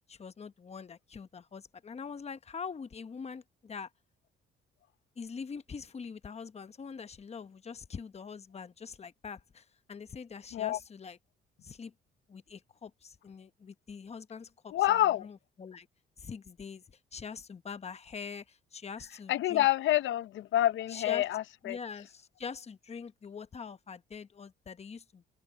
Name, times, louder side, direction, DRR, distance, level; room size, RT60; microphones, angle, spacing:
voice 1, 0.1-3.9 5.2-11.2 11.6-11.9 12.3-15.9 16.2-16.8 17.1-19.7 20.9-21.2 21.6-25.2, left 6 dB, 30° left, 1.0 m, -44 dB
voice 2, 14.7-15.3 19.3-21.8, left 14 dB, 70° left, 0.6 m, -27 dB
cardioid pair, 90°, 20 cm